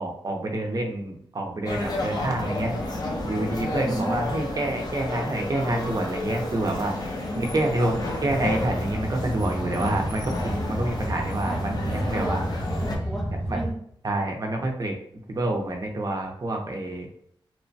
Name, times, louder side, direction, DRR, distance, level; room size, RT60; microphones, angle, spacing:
voice 1, 0.0-2.7 3.2-6.9 7.3-12.4 13.5-13.6 14.0-14.9 15.3-17.1, right 1 dB, 40° right, 2 dB, 0.6 m, -28 dB
sound 1, 1.6-13.0, left 2 dB, 45° left, 0.6 m, -31 dB
voice 2, 3.5-4.1 6.8-7.7 11.4-13.7, right 1 dB, ahead, -1 dB, 0.6 m, -35 dB
sound 2, 8.3-13.7, equal, 25° right, 1.0 m, -31 dB
2.9 x 2.1 x 2.6 m, 0.67 s
wide cardioid pair, 110°, 9 cm